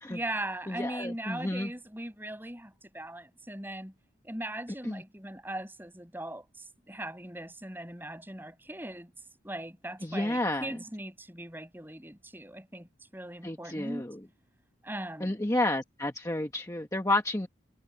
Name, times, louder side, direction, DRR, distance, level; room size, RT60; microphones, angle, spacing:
voice 1, 0.1-3.9 4.2-9.1 9.4-14.1 14.8-15.4, right 1 dB, 10° right, 6.9 m, -39 dB
voice 2, 0.7-1.7 4.8-5.0 10.0-10.7 13.4-14.2 15.2-17.5, left 1 dB, 15° left, 1.2 m, -30 dB
head